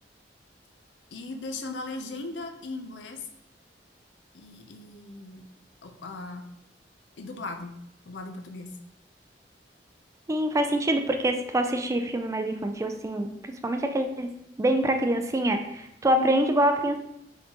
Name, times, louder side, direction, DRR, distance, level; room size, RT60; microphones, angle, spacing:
voice 1, 1.1-3.3 4.3-5.5 5.8-6.4 7.2-7.8 8.0-8.8 16.1-16.5, left 2 dB, 80° left, 6 dB, 0.5 m, -37 dB
voice 2, 10.3-14.3 14.6-17.0, right 1 dB, 15° right, 6 dB, 0.3 m, -25 dB
4.4 x 3.8 x 2.9 m, 0.78 s
head